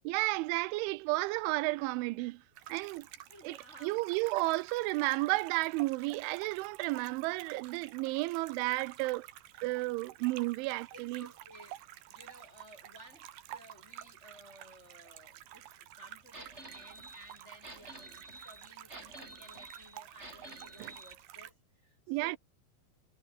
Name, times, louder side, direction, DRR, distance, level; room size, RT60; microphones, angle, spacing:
voice 1, 0.1-2.4 2.7-3.1 3.4-3.6 3.8-9.3 9.6-11.3 20.8-20.9 22.1-22.4, right 21 dB, 90° right, 3.1 m, -32 dB
sound 1, 2.6-21.5, right 13 dB, 65° right, 3.2 m, -51 dB
voice 2, 3.3-4.6 10.9-11.8 12.1-22.4, equal, 20° left, 2.6 m, -57 dB
sound 2, 16.3-21.1, right 1 dB, 15° right, 7.7 m, -50 dB
omnidirectional pair, 5.3 m